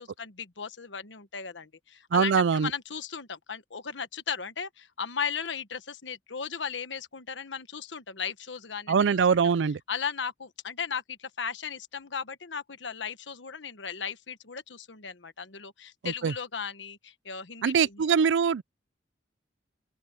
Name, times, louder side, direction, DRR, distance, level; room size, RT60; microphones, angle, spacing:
voice 1, 0.0-9.4 9.9-18.0, left 6 dB, 80° left, 1.3 m, -36 dB
voice 2, 2.1-2.7 8.9-9.8 16.0-16.3 17.6-18.6, right 6 dB, 80° right, 0.4 m, -23 dB
open air
head